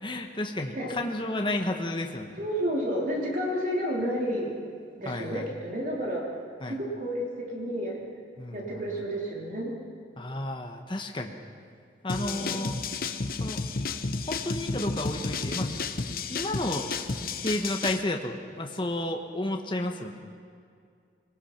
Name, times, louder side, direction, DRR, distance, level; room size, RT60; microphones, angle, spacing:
voice 1, 0.0-2.4 5.1-5.5 6.6-6.8 8.4-8.6 10.2-11.4 12.0-12.8 13.4-13.6 14.3-15.8 16.3-16.9 17.4-20.4, left 1 dB, 25° left, 3 dB, 1.2 m, -32 dB
voice 2, 2.4-4.5 5.0-6.2 6.6-8.0 8.5-9.7 12.1-12.9, equal, 45° right, -2 dB, 3.5 m, -31 dB
sound 1, 12.1-18.0, left 4 dB, 50° left, 0.9 m, -32 dB
23.0 x 20.0 x 5.9 m, 2.3 s
head